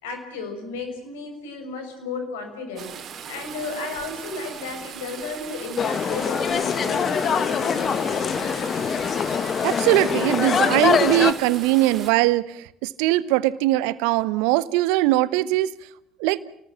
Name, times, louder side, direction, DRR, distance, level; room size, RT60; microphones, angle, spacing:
voice 1, 0.0-2.9 3.3-8.5, left 4 dB, 70° left, 5 dB, 6.6 m, -34 dB
sound 1, 2.8-12.1, right 7 dB, 45° right, 3.5 m, -38 dB
sound 2, 5.8-11.3, left 7 dB, 40° left, 1.7 m, -23 dB
voice 2, 9.6-12.4 12.8-15.7 16.2-16.4, right 17 dB, 65° right, 18 dB, 1.1 m, -21 dB
30.0 x 19.5 x 7.6 m, 0.76 s
figure-of-eight pair, 60°, 0 cm